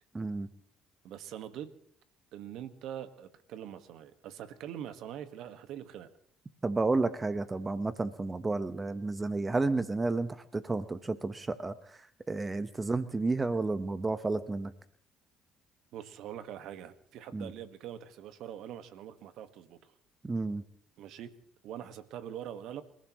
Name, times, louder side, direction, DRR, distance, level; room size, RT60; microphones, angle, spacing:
voice 1, 0.1-0.5 6.6-11.7 12.3-14.7 17.3-17.5 20.2-20.6, right 3 dB, 25° right, 12 dB, 1.2 m, -31 dB
voice 2, 1.0-1.8 2.3-6.1 15.9-19.9 21.0-21.3 21.6-22.8, right 10 dB, 70° right, 9 dB, 1.6 m, -43 dB
29.0 x 15.5 x 3.2 m, 0.67 s
hypercardioid pair, 65°, 0 cm